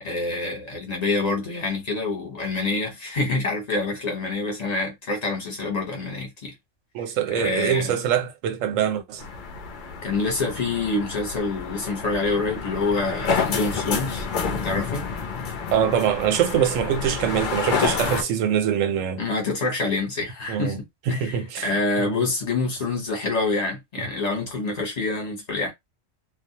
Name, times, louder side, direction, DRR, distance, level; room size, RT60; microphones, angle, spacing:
voice 1, 0.0-6.5 7.3-8.0 10.0-15.0 19.2-20.7 21.1-25.7, left 3 dB, 35° left, 0.9 m, -26 dB
voice 2, 6.9-9.2 15.7-19.2 20.5-20.8 21.1-21.7 22.0-22.2, right 8 dB, 80° right, 1.0 m, -23 dB
sound 1, 9.2-18.2, left 5 dB, 55° left, 0.5 m, -29 dB
2.3 x 2.1 x 2.8 m
omnidirectional pair, 1.3 m